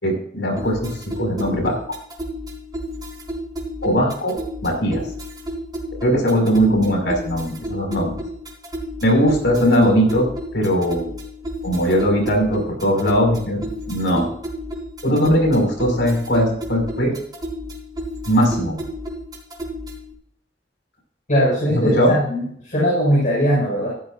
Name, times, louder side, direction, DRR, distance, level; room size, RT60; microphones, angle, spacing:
voice 1, 0.0-1.8 3.8-5.1 6.0-8.2 9.0-10.3 10.5-11.1 11.6-14.3 15.0-17.2 18.3-18.8 21.7-22.1, equal, 75° left, 1 dB, 5.6 m, -19 dB
sound 1, 0.6-20.1, equal, 20° right, 3.4 m, -32 dB
voice 2, 21.3-23.9, equal, 45° left, -5 dB, 5.9 m, -20 dB
15.0 x 13.5 x 2.6 m, 0.64 s
head